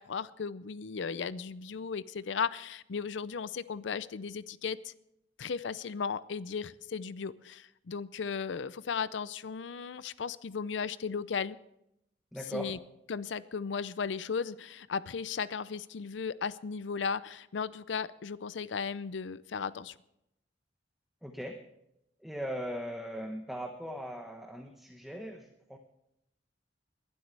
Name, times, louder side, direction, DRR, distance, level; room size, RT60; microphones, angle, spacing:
voice 1, 0.0-4.9 5.4-11.6 12.5-12.8 13.1-19.9, left 6 dB, 75° left, 17 dB, 0.5 m, -36 dB
voice 2, 12.3-12.8 21.2-21.6 22.2-25.8, equal, ahead, 3 dB, 1.0 m, -39 dB
21.5 x 12.0 x 3.3 m, 0.82 s
head